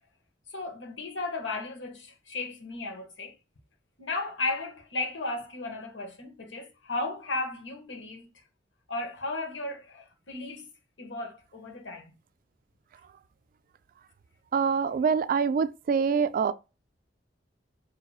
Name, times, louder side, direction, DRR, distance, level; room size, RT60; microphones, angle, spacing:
voice 1, 0.5-3.3 4.0-8.4 8.9-10.7 11.0-12.1, left 2 dB, 85° left, 1.0 m, -35 dB
voice 2, 14.5-16.5, right 6 dB, 50° right, 0.3 m, -25 dB
6.1 x 2.7 x 2.3 m
head